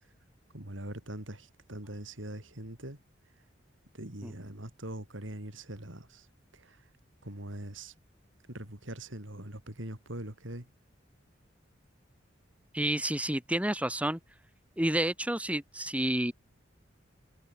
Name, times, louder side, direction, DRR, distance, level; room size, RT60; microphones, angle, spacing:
voice 1, 0.5-3.0 3.9-6.3 6.5-6.8 7.2-7.9 8.5-10.7, right 1 dB, 85° right, 4.5 m, -42 dB
voice 2, 12.7-14.2 14.8-16.3, right 1 dB, 5° right, 3.2 m, -30 dB
head